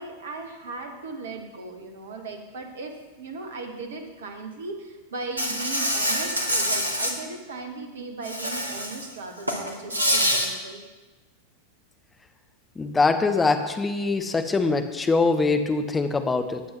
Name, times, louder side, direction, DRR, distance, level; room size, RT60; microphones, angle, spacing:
voice 1, 0.0-10.8, right 3 dB, 65° right, 5 dB, 1.5 m, -37 dB
Insect, 5.4-7.1 8.2-9.0 9.4-10.5, equal, 85° right, 1.3 m, -25 dB
voice 2, 12.8-16.6, left 3 dB, 15° left, 6 dB, 1.0 m, -23 dB
19.0 x 7.6 x 3.1 m, 1.2 s
figure-of-eight pair, 90°, 0 cm